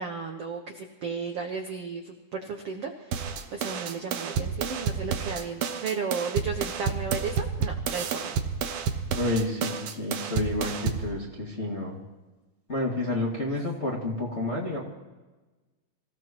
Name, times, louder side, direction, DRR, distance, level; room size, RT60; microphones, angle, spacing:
voice 1, 0.0-3.2 3.5-8.3 13.5-13.6, right 5 dB, 65° right, 2 dB, 1.6 m, -34 dB
sound 1, 3.1-11.1, right 6 dB, 85° right, 1.3 m, -30 dB
voice 2, 9.1-12.0 12.7-14.8, left 2 dB, 25° left, -4 dB, 1.8 m, -30 dB
26.5 x 16.0 x 3.0 m, 1.2 s
omnidirectional pair, 4.2 m